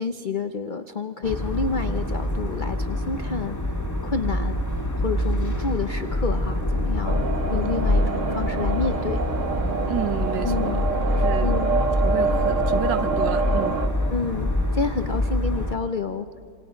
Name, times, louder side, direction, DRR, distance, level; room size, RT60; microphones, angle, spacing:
voice 1, 0.0-3.6 4.0-4.6 4.9-9.3 10.4-10.8 11.2-11.7 14.1-16.3, left 4 dB, 85° left, 8 dB, 0.4 m, -29 dB
sound 1, 1.2-15.7, left 1 dB, 10° left, 1.9 m, -25 dB
sound 2, 7.0-13.9, right 4 dB, 45° right, 1.5 m, -26 dB
voice 2, 9.9-10.8 11.1-13.8, right 10 dB, 85° right, 13 dB, 1.5 m, -31 dB
27.0 x 27.0 x 5.1 m, 2.3 s
omnidirectional pair, 1.9 m